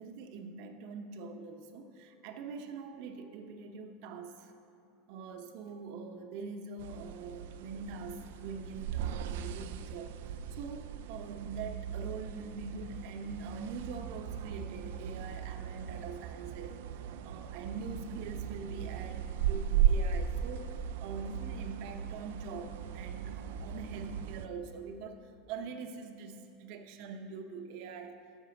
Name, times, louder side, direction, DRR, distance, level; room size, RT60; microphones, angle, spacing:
voice 1, 0.0-4.5 5.1-20.7 21.0-28.2, right 4 dB, 55° right, 6 dB, 0.8 m, -44 dB
sound 1, 6.8-24.5, right 9 dB, 75° right, 0.4 m, -36 dB
11.0 x 6.8 x 5.9 m, 2.5 s
supercardioid pair, 155°, 0 cm